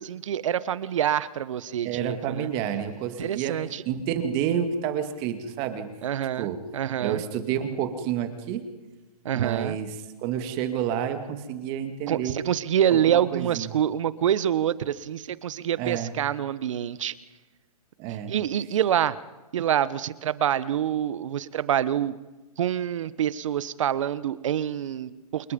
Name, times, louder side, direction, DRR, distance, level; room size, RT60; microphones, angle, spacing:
voice 1, 0.0-2.5 3.2-3.8 6.0-6.5 6.7-7.2 9.2-9.8 12.1-17.1 18.3-19.2 19.5-22.2 22.6-25.5, right 10 dB, 55° right, 18 dB, 1.2 m, -26 dB
voice 2, 1.8-3.6 3.8-5.9 6.4-6.6 7.0-8.7 9.3-12.4 12.9-13.7 15.8-16.2 18.0-18.3, right 9 dB, 30° right, 9 dB, 2.5 m, -29 dB
28.5 x 20.0 x 5.4 m, 1.2 s
hypercardioid pair, 150°, 19 cm